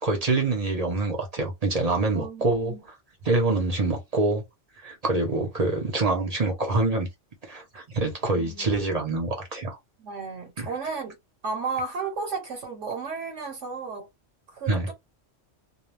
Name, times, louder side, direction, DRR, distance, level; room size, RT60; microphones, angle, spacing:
voice 1, 0.0-2.7 3.2-4.4 4.8-7.1 7.5-9.8 10.6-10.7 14.7-14.9, right 2 dB, 40° right, 0.7 m, -25 dB
voice 2, 2.1-2.8 8.4-9.1 10.0-11.1 11.4-14.1 14.5-14.9, right 4 dB, 80° right, 1.1 m, -33 dB
2.3 x 2.2 x 3.1 m
omnidirectional pair, 1.2 m